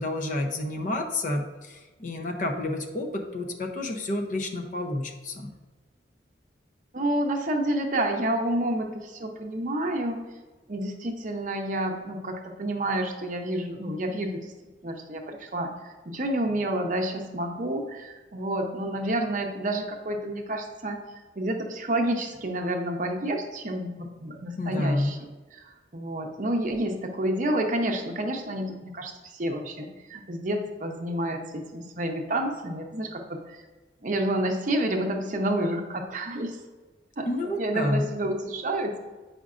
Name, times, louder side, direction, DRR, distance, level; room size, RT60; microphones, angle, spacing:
voice 1, 0.0-5.5 24.6-25.2 37.3-38.1, left 1 dB, 40° left, 4 dB, 0.6 m, -29 dB
voice 2, 6.9-10.3 10.7-14.5 14.8-21.0 21.4-25.2 25.5-33.6 34.0-36.6 37.2-39.0, right 1 dB, 45° right, 3 dB, 0.6 m, -29 dB
8.3 x 5.0 x 2.5 m, 1.3 s
head